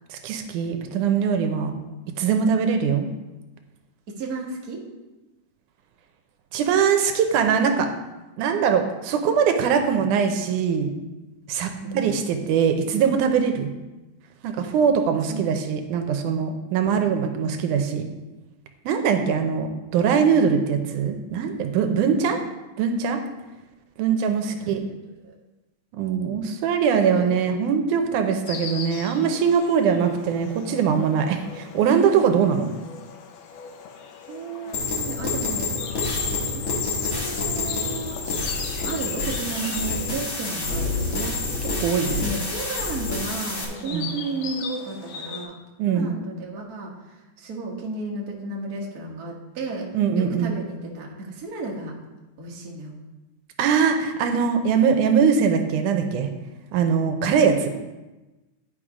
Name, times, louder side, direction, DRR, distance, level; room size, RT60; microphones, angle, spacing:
voice 1, 0.1-1.8 2.1-3.1 6.5-7.9 8.4-10.9 11.5-13.7 14.4-18.1 18.9-22.4 22.8-23.2 24.0-24.8 26.0-32.7 41.8-42.2 43.9-44.1 45.8-46.1 49.9-50.5 53.6-56.3 56.7-57.7, right 6 dB, 80° right, 6 dB, 2.2 m, -22 dB
voice 2, 4.1-4.9 11.8-12.1 15.3-15.4 24.6-24.7 25.2-25.3 26.9-27.5 34.3-36.1 36.5-38.2 38.8-41.4 42.2-45.6 45.8-49.9 50.1-51.9 52.4-53.0 57.6-57.7, right 3 dB, 45° right, -2 dB, 1.2 m, -33 dB
Insect, 28.5-45.4, left 6 dB, 85° left, 2.5 m, -40 dB
sound 1, 34.7-43.6, left 3 dB, 40° left, 1.2 m, -28 dB
10.0 x 5.7 x 4.9 m, 1.1 s
omnidirectional pair, 3.7 m